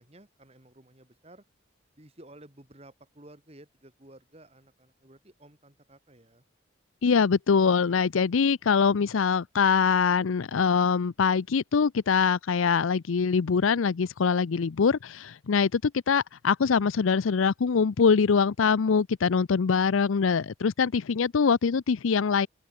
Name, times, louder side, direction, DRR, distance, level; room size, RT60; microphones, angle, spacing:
voice 1, 0.0-1.4 2.0-6.4 7.7-7.9, right 1 dB, 30° right, 2.3 m, -53 dB
voice 2, 7.0-22.5, left 5 dB, 80° left, 0.5 m, -23 dB
open air
head